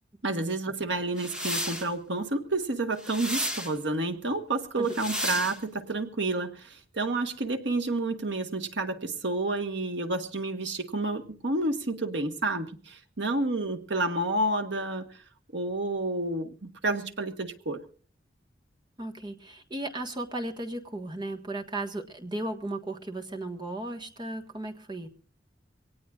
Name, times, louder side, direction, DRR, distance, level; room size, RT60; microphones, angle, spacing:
voice 1, 0.2-15.1 15.5-17.8, right 2 dB, 80° right, 7 dB, 1.5 m, -30 dB
sound 1, 1.2-1.9 3.0-3.7 4.9-5.6, equal, 5° right, 1.7 m, -32 dB
voice 2, 19.0-25.1, right 2 dB, 25° right, 4 dB, 1.5 m, -35 dB
23.5 x 18.0 x 2.5 m, 0.42 s
head